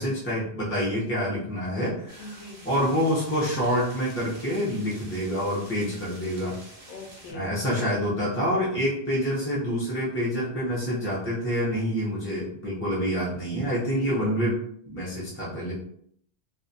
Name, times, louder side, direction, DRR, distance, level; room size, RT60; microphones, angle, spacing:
voice 1, 0.0-6.5 7.3-14.6 14.8-15.7, equal, 20° left, -7 dB, 0.4 m, -27 dB
sound 1, 2.1-7.3, right 2 dB, 40° right, 0.7 m, -48 dB
voice 2, 2.2-2.6 6.9-7.9 13.2-13.3 14.0-14.3, left 1 dB, 80° left, 0 dB, 0.9 m, -42 dB
2.4 x 2.0 x 2.6 m, 0.67 s
omnidirectional pair, 1.2 m